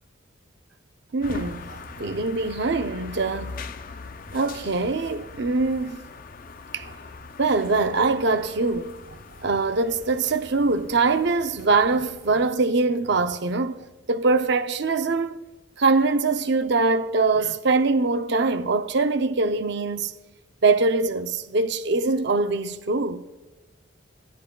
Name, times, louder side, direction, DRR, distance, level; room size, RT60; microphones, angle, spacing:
voice 1, 1.1-3.6 4.3-6.1 6.7-6.9 7.4-9.0 9.4-15.4 15.8-20.1 20.6-23.2, right 3 dB, 55° right, 0.6 m, -23 dB
sound 1, 1.2-12.5, left 4 dB, 40° left, 0.5 m, -41 dB
26.5 x 15.5 x 2.3 m
head